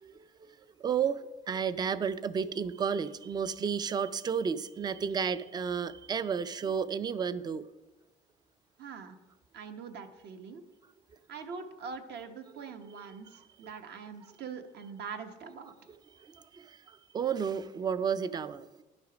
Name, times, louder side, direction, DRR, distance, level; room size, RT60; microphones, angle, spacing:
voice 1, 0.0-7.7 16.2-18.8, right 7 dB, 20° right, 15 dB, 0.4 m, -32 dB
voice 2, 8.8-9.2 9.5-10.6 11.3-15.7, right 5 dB, 60° right, 7 dB, 1.0 m, -43 dB
10.5 x 6.4 x 4.9 m, 1.1 s
cardioid pair, 135°, 19 cm